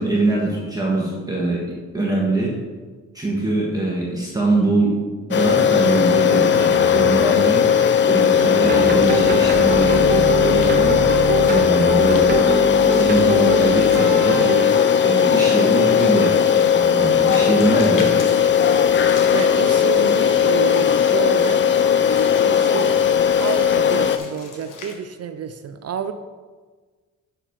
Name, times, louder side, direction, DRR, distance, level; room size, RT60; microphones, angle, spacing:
voice 1, 0.0-2.5 3.1-5.0 5.3-7.6 8.1-11.0 11.5-12.4 12.9-14.5 15.0-18.1, right 2 dB, 10° right, -5 dB, 1.4 m, -22 dB
sound 1, 5.3-24.2, left 8 dB, 35° left, 0.4 m, -17 dB
sound 2, 8.6-14.7, right 4 dB, 30° right, 0.8 m, -24 dB
Walk footsteps / Splash splatter, 11.3-25.0, left 4 dB, 70° left, 1.3 m, -43 dB
voice 2, 19.3-21.6 22.4-23.1 23.4-26.1, right 7 dB, 50° right, 9 dB, 0.4 m, -29 dB
7.9 x 6.4 x 4.6 m, 1.4 s
wide cardioid pair, 145°, 33 cm